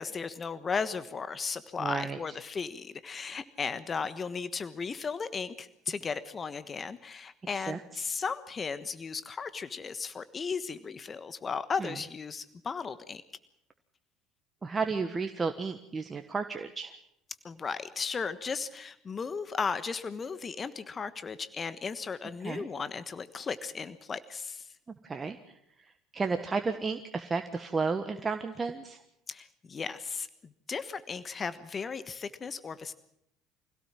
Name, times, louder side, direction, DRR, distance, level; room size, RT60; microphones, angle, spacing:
voice 1, 0.0-13.2 17.4-24.7 29.3-32.9, left 5 dB, 30° left, 13 dB, 1.3 m, -36 dB
voice 2, 1.8-2.2 7.5-8.1 11.8-11.9 14.6-16.9 22.4-22.7 25.0-25.4 26.1-29.0, right 4 dB, 25° right, 7 dB, 1.4 m, -32 dB
25.0 x 17.0 x 7.5 m, 0.78 s
hypercardioid pair, 65°, 0 cm